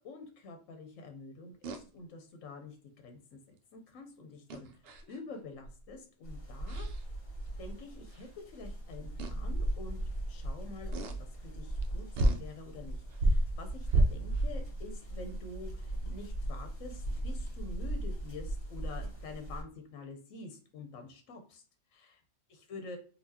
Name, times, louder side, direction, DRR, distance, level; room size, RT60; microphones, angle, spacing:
voice 1, 0.0-4.7 5.1-6.9 7.6-10.0 10.3-21.6 21.9-22.2 22.5-23.0, left 3 dB, 75° left, 4 dB, 1.1 m, -47 dB
sound 1, 1.6-1.8 4.5-5.2 5.6-5.9 6.7-7.0 8.1-8.2 9.2-9.5 10.9-11.2 11.8-11.9 12.2-12.5 13.1-14.5, right 1 dB, 65° right, 0.7 m, -29 dB
sound 2, 6.2-19.6, right 1 dB, 25° left, 1.1 m, -38 dB
4.1 x 2.4 x 2.6 m, 0.41 s
omnidirectional pair, 1.3 m